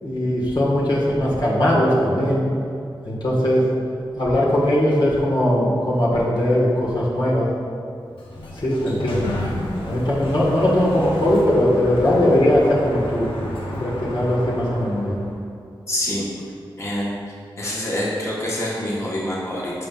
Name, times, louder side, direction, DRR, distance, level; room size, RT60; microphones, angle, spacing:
voice 1, 0.0-2.5 3.0-3.6 4.1-7.5 8.5-9.4 9.8-13.3 13.8-15.2, left 1 dB, 60° left, -6 dB, 1.7 m, -19 dB
Sliding door, 8.0-15.4, left 1 dB, 85° left, 1.0 m, -31 dB
voice 2, 15.9-16.2 16.8-17.1 17.6-19.7, left 1 dB, 35° left, -7 dB, 1.6 m, -25 dB
11.5 x 5.8 x 2.5 m, 2.4 s
wide cardioid pair, 65°, 9 cm